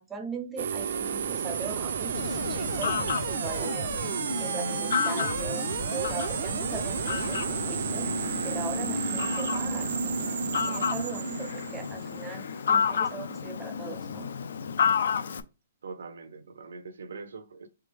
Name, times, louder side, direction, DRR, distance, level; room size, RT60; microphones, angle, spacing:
voice 1, 0.0-14.3, right 4 dB, 10° right, 0.5 m, -40 dB
sound 1, 0.6-12.5, right 7 dB, 60° right, 0.4 m, -32 dB
Fowl, 2.1-15.4, left 7 dB, 70° left, 0.4 m, -31 dB
sound 2, 6.9-13.5, left 5 dB, 50° left, 0.7 m, -51 dB
voice 2, 15.8-17.7, right 4 dB, 85° right, 0.7 m, -42 dB
3.7 x 3.5 x 3.3 m
hypercardioid pair, 170°, 0 cm